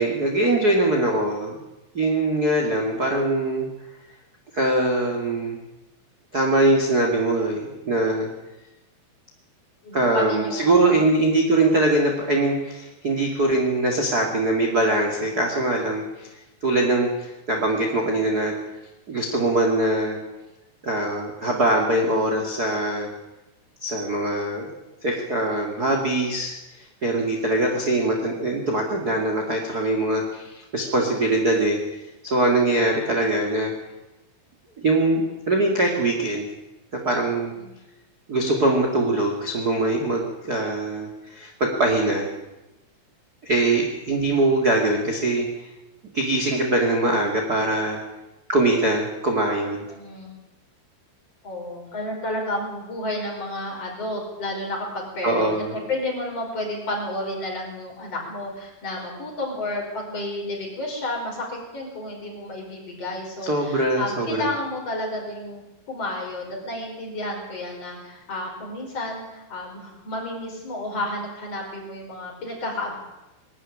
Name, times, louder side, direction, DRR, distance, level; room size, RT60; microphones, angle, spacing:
voice 1, 0.0-1.6 1.9-3.7 4.5-5.6 6.3-8.3 9.9-16.3 16.6-18.5 19.1-20.2 20.8-23.1 23.8-24.7 25.0-26.5 27.0-31.8 32.2-33.7 34.8-36.5 36.9-37.5 38.3-42.3 43.4-45.5 46.1-48.0 48.5-49.8 55.2-55.7 63.4-64.5, right 2 dB, 35° right, 1 dB, 1.6 m, -22 dB
voice 2, 9.8-11.0 37.6-37.7 49.9-50.4 51.4-55.4 55.7-72.9, left 1 dB, 30° left, -1 dB, 5.9 m, -31 dB
21.5 x 12.5 x 10.0 m, 1.0 s
omnidirectional pair, 5.6 m